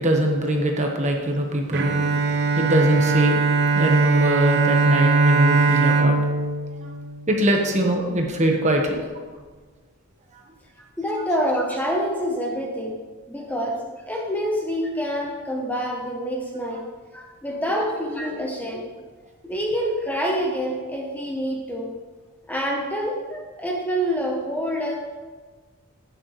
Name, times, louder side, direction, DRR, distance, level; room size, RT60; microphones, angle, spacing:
voice 1, 0.0-6.3 6.8-6.9 7.3-9.0 10.3-10.4 17.8-18.0, right 1 dB, 35° right, 2 dB, 1.2 m, -23 dB
Bowed string instrument, 1.7-7.9, right 3 dB, 50° right, 0.8 m, -21 dB
voice 2, 11.0-13.0 13.3-16.9 17.1-18.9 19.4-22.0 22.5-25.0, equal, 5° left, 0 dB, 0.9 m, -27 dB
12.0 x 9.3 x 3.2 m, 1.4 s
head